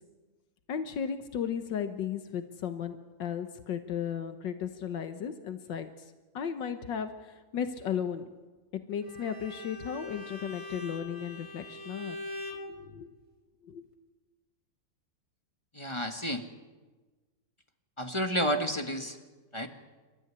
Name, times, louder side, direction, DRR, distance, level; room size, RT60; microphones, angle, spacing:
voice 1, 0.7-8.3 8.7-12.2 12.7-13.1 13.6-13.8, left 8 dB, 85° left, 8 dB, 1.8 m, -35 dB
Bowed string instrument, 9.0-12.7, left 1 dB, 15° right, 3.0 m, -42 dB
voice 2, 15.7-16.4 18.0-19.2 19.5-19.7, equal, 15° left, 6 dB, 1.6 m, -30 dB
29.5 x 13.5 x 9.9 m, 1.3 s
omnidirectional pair, 1.9 m